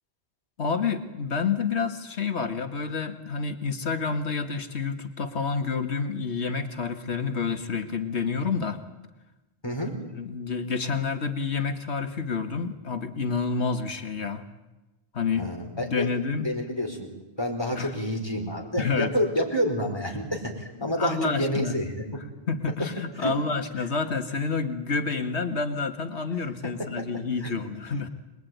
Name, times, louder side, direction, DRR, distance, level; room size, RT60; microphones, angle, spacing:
voice 1, 0.6-8.8 9.9-14.4 15.1-16.5 17.7-17.9 18.8-19.1 20.8-21.8 22.5-28.1, left 5 dB, 80° left, 7 dB, 2.0 m, -29 dB
voice 2, 9.6-9.9 15.3-16.1 16.4-17.1 17.4-22.0 23.2-23.3 26.8-27.1 27.4-27.5, equal, 25° left, 1 dB, 4.8 m, -29 dB
26.0 x 21.0 x 9.4 m, 1.1 s
omnidirectional pair, 1.1 m